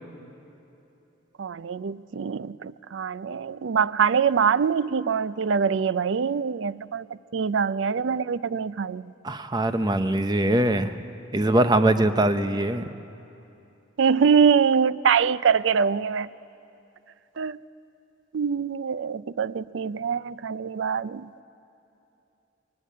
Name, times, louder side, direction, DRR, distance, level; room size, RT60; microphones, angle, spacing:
voice 1, 1.4-7.1 7.3-9.1 14.0-16.3 17.4-17.6 18.3-21.4, right 6 dB, 70° right, 17 dB, 0.4 m, -24 dB
voice 2, 9.2-10.9 11.3-12.8, right 1 dB, 20° right, 9 dB, 0.7 m, -22 dB
21.5 x 19.0 x 8.5 m, 2.8 s
head